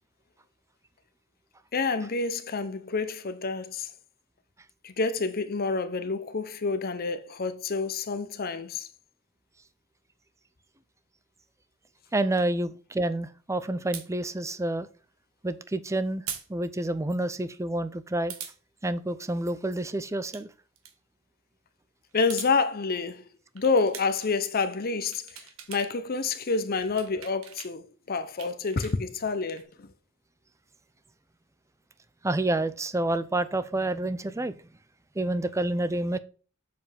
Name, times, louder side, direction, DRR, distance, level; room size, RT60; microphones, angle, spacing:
voice 1, 1.7-3.9 4.8-8.9 22.1-23.2 23.5-29.9, left 4 dB, 45° left, 0.7 m, -28 dB
voice 2, 12.1-14.9 15.4-16.2 16.5-18.3 18.8-20.5 32.2-34.5 35.2-36.2, right 2 dB, 15° right, 0.5 m, -28 dB
sound 1, 13.9-14.1 16.3-16.5 16.8-16.9 18.3-18.6 20.1-20.4 20.8-20.9 22.1-22.5 23.6-24.3 24.9-25.9 26.2-27.7 28.1-29.6, right 8 dB, 75° right, 1.5 m, -41 dB
7.6 x 6.9 x 3.4 m
head